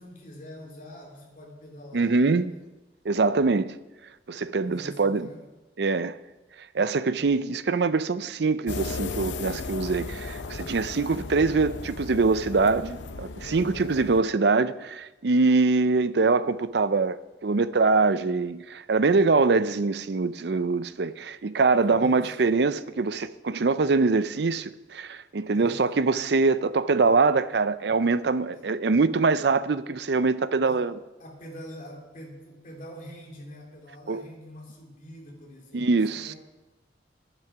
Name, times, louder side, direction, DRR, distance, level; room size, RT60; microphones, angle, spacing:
voice 1, 0.0-2.6 4.6-5.4 13.4-13.9 21.9-22.3 25.5-26.0 28.5-28.7 30.7-30.8 31.2-36.4, equal, 45° left, 2.8 m, -45 dB
voice 2, 1.9-2.5 3.0-3.7 4.3-5.3 5.8-6.2 6.7-17.2 17.4-30.9 34.1-34.3 35.7-36.3, right 4 dB, 65° right, 0.5 m, -23 dB
sound 1, 8.7-14.2, left 3 dB, 80° left, 0.6 m, -36 dB
11.0 x 10.5 x 6.0 m
head